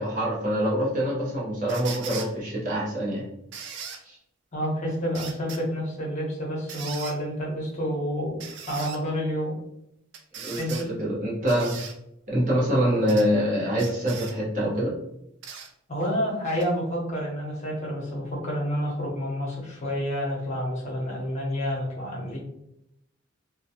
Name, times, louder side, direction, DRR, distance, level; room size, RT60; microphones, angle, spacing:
voice 1, 0.0-3.2 4.0-4.2 10.4-11.8 12.3-14.9, equal, 40° right, -5 dB, 0.8 m, -25 dB
sound 1, 1.7-2.3 3.5-4.0 5.1-5.6 6.7-7.2 8.4-9.0 10.1-10.9 11.5-11.9 13.1-13.3 13.8-14.3 15.4-15.7 16.6-16.7, right 6 dB, 60° right, 0.4 m, -38 dB
voice 2, 4.5-8.4 8.7-9.6 10.6-10.9 15.9-22.4, equal, 35° left, -4 dB, 0.8 m, -29 dB
2.2 x 2.2 x 2.7 m, 0.81 s
head